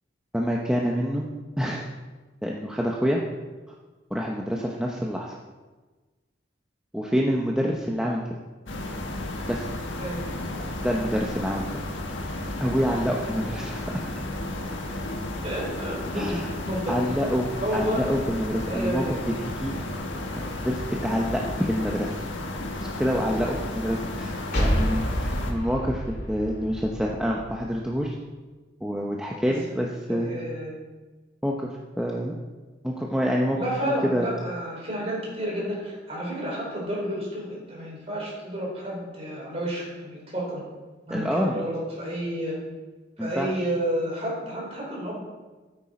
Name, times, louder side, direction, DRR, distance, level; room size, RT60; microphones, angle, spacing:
voice 1, 0.3-1.2 1.6-1.9 2.4-3.2 4.1-5.4 6.9-8.2 9.5-9.7 10.8-11.7 12.6-14.0 16.1-16.5 16.9-17.5 17.7-19.8 20.3-22.2 22.8-28.2 28.8-30.4 31.4-32.3 32.8-33.6 33.8-34.3 41.1-41.6 43.2-43.5, equal, 5° right, -2 dB, 0.8 m, -27 dB
sound 1, 8.7-25.5, left 1 dB, 90° left, 1.5 m, -33 dB
voice 2, 15.4-16.3 16.6-17.0 17.6-18.0 18.6-19.1 29.7-30.7 33.5-40.6 41.1-42.6 43.2-45.2, right 1 dB, 35° right, -4 dB, 4.2 m, -31 dB
sound 2, 24.5-28.0, equal, 60° left, 2.0 m, -28 dB
13.5 x 9.0 x 4.3 m, 1.3 s
head